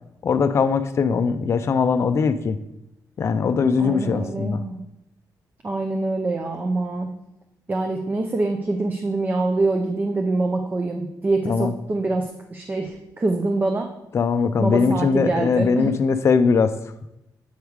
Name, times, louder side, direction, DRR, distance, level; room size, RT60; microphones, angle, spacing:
voice 1, 0.2-2.6 3.2-4.6 11.4-11.7 14.1-16.7, left 5 dB, 40° left, 9 dB, 0.4 m, -20 dB
voice 2, 3.8-4.8 5.6-7.1 7.7-13.9 14.6-15.9, right 2 dB, 25° right, 4 dB, 0.5 m, -25 dB
8.0 x 3.4 x 4.7 m, 0.87 s
cardioid pair, 115°, 7 cm